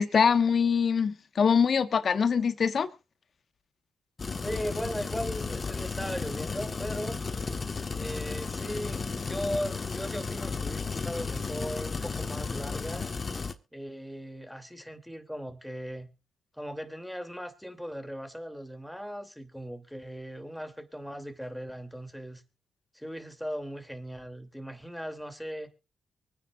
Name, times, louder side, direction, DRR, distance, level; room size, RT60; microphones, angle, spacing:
voice 1, 0.0-2.9, left 6 dB, 60° left, 1.4 m, -24 dB
sound 1, 4.2-13.5, left 4 dB, 45° left, 1.3 m, -34 dB
voice 2, 4.4-7.2 7.9-13.1 13.7-16.1 16.5-22.4 22.9-25.7, equal, ahead, 2.8 m, -38 dB
24.0 x 9.9 x 2.5 m
supercardioid pair, 50°, 0 cm